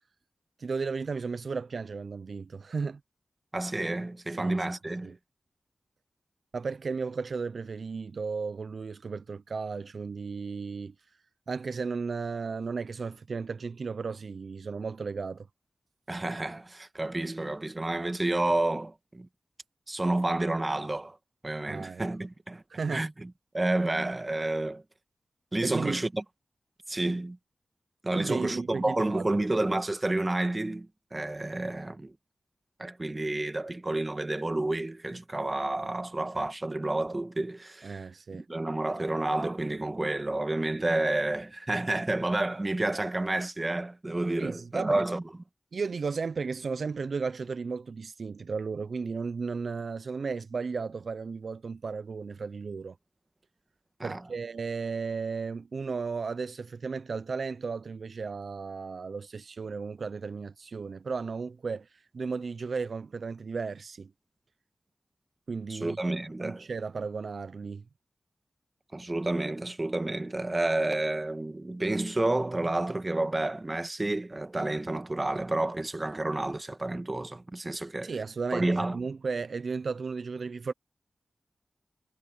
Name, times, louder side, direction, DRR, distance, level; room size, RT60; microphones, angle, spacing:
voice 1, 0.6-3.0 4.4-4.7 5.0-5.2 6.5-10.9 11.5-15.5 21.7-22.0 22.7-23.1 25.6-26.0 28.1-29.2 37.8-38.5 44.4-45.0 45.7-53.0 54.0-64.1 65.5-66.0 66.4-67.8 78.0-78.7 78.9-80.7, right 4 dB, 70° right, 0.4 m, -34 dB
voice 2, 3.5-5.1 16.1-19.3 19.9-21.2 21.4-22.6 22.9-24.8 25.5-26.2 26.9-27.4 28.0-32.1 32.8-38.0 38.5-45.2 54.0-54.2 65.7-66.7 68.9-78.1 78.5-79.0, right 2 dB, 25° right, 1.3 m, -30 dB
wide cardioid pair, 90°, 0 cm